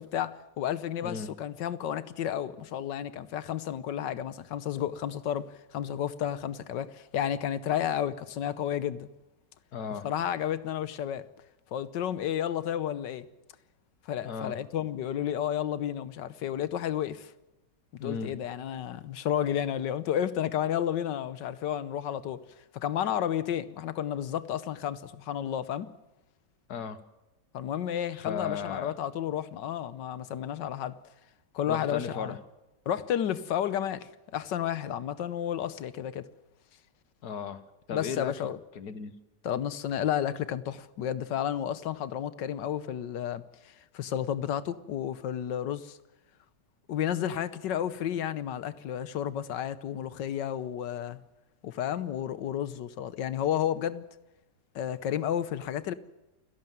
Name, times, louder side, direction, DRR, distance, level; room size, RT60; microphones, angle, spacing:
voice 1, 0.0-9.1 10.0-11.3 11.7-13.3 14.1-17.3 18.0-22.4 22.7-25.9 27.5-31.0 31.5-32.4 32.9-36.3 37.9-38.6 39.4-46.0 46.9-51.2 51.6-54.0 54.8-55.9, left 10 dB, 85° left, 1.6 m, -32 dB
voice 2, 1.0-1.3 9.7-10.1 14.2-14.6 18.0-18.3 26.7-27.0 28.1-28.9 31.7-32.4 37.2-38.3 38.8-39.2, left 6 dB, 65° left, 1.8 m, -35 dB
28.5 x 11.5 x 9.3 m
omnidirectional pair, 1.9 m